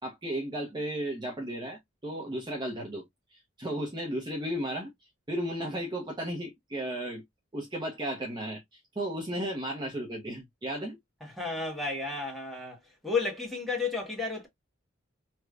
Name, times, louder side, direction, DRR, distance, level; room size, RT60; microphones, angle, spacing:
voice 1, 0.0-3.1 3.3-4.9 5.3-7.2 7.5-11.0, right 1 dB, 25° right, 0.9 m, -34 dB
voice 2, 11.2-14.5, left 4 dB, ahead, 1.4 m, -32 dB
3.2 x 3.0 x 2.4 m
head